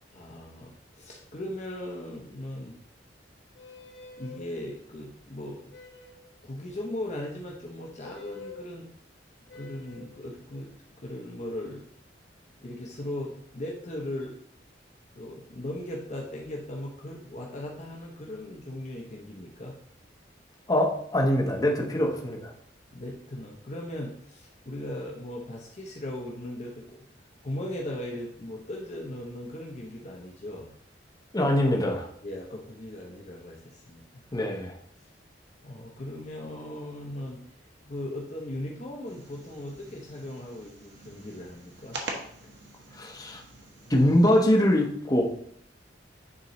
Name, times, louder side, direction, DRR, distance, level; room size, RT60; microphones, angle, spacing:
voice 1, 0.1-2.8 4.2-5.7 6.4-8.9 9.5-10.7 11.0-11.8 12.6-14.4 15.2-19.8 22.9-27.1 27.4-30.7 32.2-34.2 35.6-37.4 37.8-42.0 42.4-42.5, left 1 dB, 40° left, -1 dB, 0.8 m, -38 dB
sound 1, 3.5-4.5 5.7-6.3 8.0-8.6 9.5-10.1, left 3 dB, 70° left, 1.3 m, -46 dB
voice 2, 20.7-22.5 31.3-32.1 34.3-34.7 43.0-43.4 43.9-45.2, left 1 dB, 20° left, -1 dB, 1.1 m, -23 dB
sound 2, 39.1-44.6, right 2 dB, 75° right, 1.2 m, -44 dB
9.7 x 3.8 x 3.1 m, 0.65 s
head